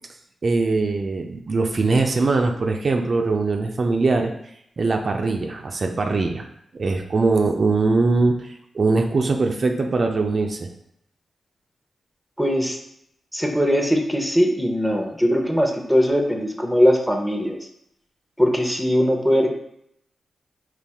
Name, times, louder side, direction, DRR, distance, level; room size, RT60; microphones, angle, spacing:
voice 1, 0.4-4.3 4.8-6.5 6.8-10.7, right 3 dB, 55° right, 3 dB, 0.4 m, -21 dB
voice 2, 12.4-12.8 13.3-17.6 18.4-19.5, equal, ahead, 3 dB, 0.8 m, -20 dB
4.1 x 2.4 x 3.5 m, 0.75 s
supercardioid pair, 40°, 0 cm